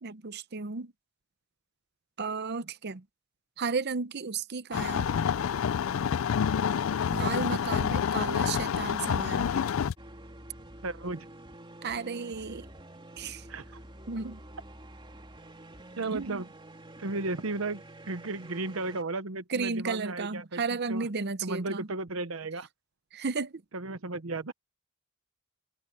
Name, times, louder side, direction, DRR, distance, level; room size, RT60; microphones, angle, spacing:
voice 1, 0.0-0.9 2.2-3.0 3.6-5.1 7.1-9.5 11.8-12.7 13.2-13.4 14.1-14.4 16.0-16.4 19.5-21.9 23.1-23.6, right 4 dB, 55° right, 0.8 m, -33 dB
sound 1, 4.7-9.9, left 7 dB, 80° left, 0.4 m, -28 dB
sound 2, 10.0-19.0, right 1 dB, 25° right, 3.0 m, -48 dB
voice 2, 10.8-11.3 13.5-13.8 16.0-16.5 17.0-20.6 20.9-21.1 21.4-22.7 23.7-24.5, right 3 dB, 90° right, 1.0 m, -34 dB
open air
head